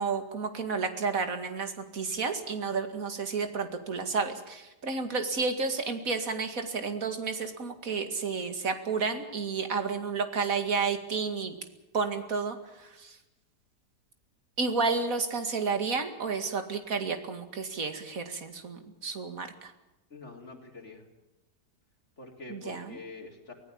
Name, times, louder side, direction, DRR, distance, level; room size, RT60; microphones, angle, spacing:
voice 1, 0.0-11.5 11.9-13.2 14.6-19.7 22.5-23.0, right 4 dB, 55° right, 7 dB, 2.5 m, -31 dB
voice 2, 20.1-21.0 22.2-23.5, left 3 dB, 40° left, 1 dB, 4.2 m, -45 dB
24.5 x 17.5 x 7.1 m, 0.96 s
omnidirectional pair, 1.8 m